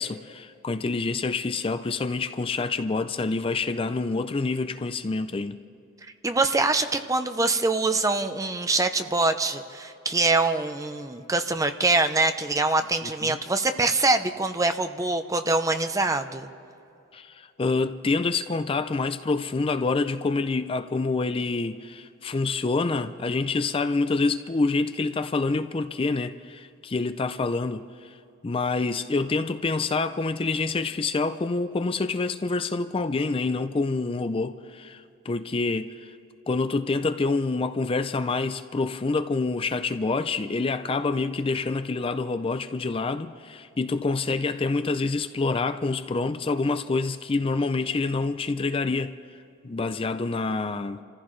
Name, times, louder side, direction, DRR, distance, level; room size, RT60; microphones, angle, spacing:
voice 1, 0.0-5.6 13.0-13.4 17.1-28.2 28.4-36.2 36.5-49.1 49.6-51.0, left 3 dB, 25° left, 0.4 m, -27 dB
voice 2, 6.2-16.5, right 3 dB, 15° right, 0.7 m, -24 dB
29.5 x 15.0 x 3.2 m
head